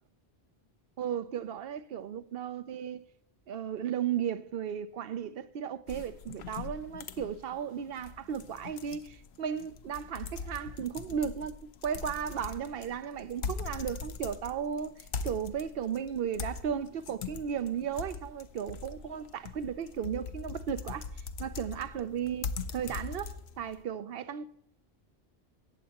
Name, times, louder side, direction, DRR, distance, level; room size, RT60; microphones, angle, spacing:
voice 1, 1.0-3.0 3.5-11.6 11.8-21.1 21.4-24.5, right 8 dB, 70° right, 0.8 m, -35 dB
sound 1, 5.9-23.8, left 5 dB, 85° left, 0.9 m, -41 dB
17.5 x 7.4 x 2.9 m
omnidirectional pair, 1.1 m